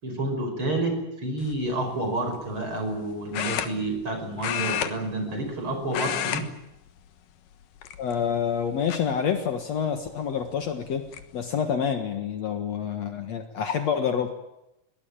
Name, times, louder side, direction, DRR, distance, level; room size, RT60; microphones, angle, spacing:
voice 1, 0.0-6.5, right 2 dB, 40° right, 6 dB, 6.0 m, -29 dB
sound 1, 1.4-1.7 3.3-4.1 4.4-5.6 5.9-6.5 6.8-7.0 7.8-8.3 8.9-9.0 10.4-10.5 10.9-11.2, left 11 dB, 80° left, 3.0 m, -30 dB
voice 2, 8.0-11.1 11.3-14.3, left 7 dB, 60° left, 7 dB, 2.5 m, -27 dB
22.5 x 18.5 x 8.9 m, 0.90 s
omnidirectional pair, 3.8 m